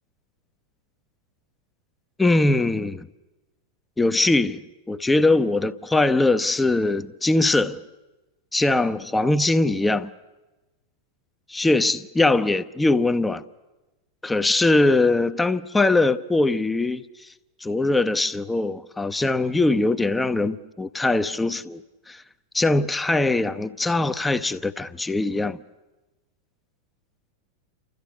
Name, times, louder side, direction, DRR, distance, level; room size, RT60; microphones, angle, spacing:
voice 1, 2.2-3.1 4.0-7.8 8.5-10.1 11.5-13.4 14.2-17.0 17.6-22.2 22.5-25.6, left 2 dB, 10° left, 0.7 m, -21 dB
29.0 x 13.5 x 9.9 m
figure-of-eight pair, 90°, 0 cm